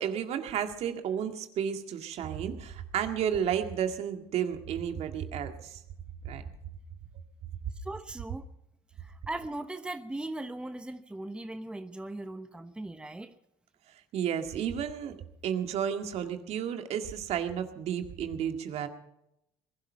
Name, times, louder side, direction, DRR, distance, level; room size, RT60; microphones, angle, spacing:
voice 1, 0.0-5.8 6.2-6.4 13.9-15.1 15.4-18.9, right 8 dB, 60° right, 6 dB, 2.0 m, -32 dB
voice 2, 7.7-8.5 9.0-13.3, right 2 dB, 10° right, 9 dB, 1.0 m, -39 dB
21.0 x 11.5 x 5.8 m, 0.80 s
supercardioid pair, 85°, 12 cm